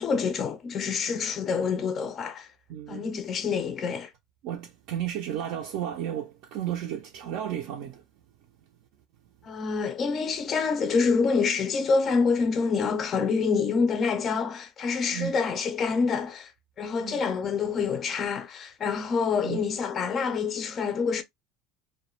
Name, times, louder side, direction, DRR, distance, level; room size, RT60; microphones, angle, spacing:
voice 1, 0.0-2.5 2.9-4.1 9.4-16.5 16.8-21.2, left 5 dB, 30° left, 0.4 m, -27 dB
voice 2, 2.7-3.1 4.4-8.0 15.1-15.3 17.0-17.2 19.4-19.6, right 10 dB, 65° right, 0.4 m, -33 dB
2.3 x 2.1 x 2.9 m
cardioid pair, 150°, 0 cm